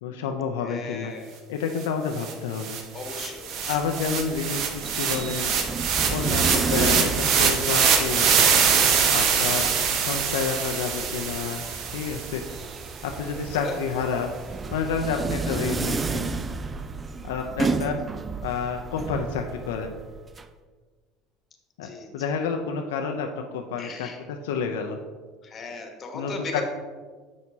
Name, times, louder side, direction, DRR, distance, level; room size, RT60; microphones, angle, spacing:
voice 1, 0.0-1.1 1.5-2.8 3.7-5.5 6.1-8.3 9.1-9.7 10.0-11.6 11.9-12.5 13.0-14.4 14.7-16.3 17.2-18.0 18.4-19.9 21.8-25.0 26.1-26.6, left 6 dB, 85° left, 4 dB, 0.5 m, -29 dB
voice 2, 0.6-1.4 2.9-3.8 6.0-6.3 9.6-9.9 13.6-13.8 21.8-22.1 23.8-24.2 25.4-26.6, left 4 dB, 35° left, 3 dB, 1.2 m, -37 dB
sound 1, 1.8-1.9 2.2-12.5, right 6 dB, 60° right, 0.8 m, -24 dB
sound 2, 3.4-20.4, right 4 dB, 25° right, 0.4 m, -32 dB
7.3 x 6.0 x 2.7 m, 1.5 s
supercardioid pair, 90°, 0 cm